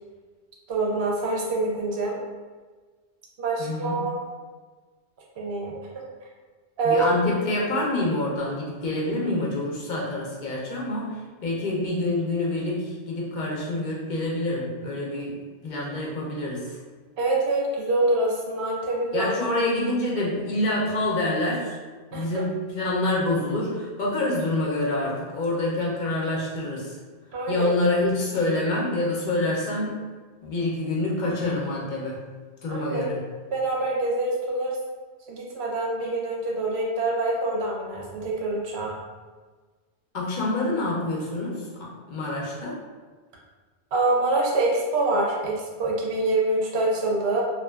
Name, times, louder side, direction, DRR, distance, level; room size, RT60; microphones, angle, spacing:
voice 1, 0.7-2.2 3.4-4.1 5.4-6.0 6.8-7.0 17.2-19.6 22.1-22.4 27.3-27.7 32.7-33.1 33.5-34.8 35.3-38.9 43.9-47.4, right 2 dB, 70° right, -3 dB, 0.8 m, -25 dB
voice 2, 3.6-4.0 6.8-15.3 15.6-16.8 19.1-21.8 22.1-27.0 27.5-29.9 30.4-32.2 32.6-33.2 40.1-42.8, left 2 dB, 55° left, -4 dB, 0.6 m, -27 dB
2.4 x 2.3 x 2.2 m, 1.4 s
omnidirectional pair, 1.1 m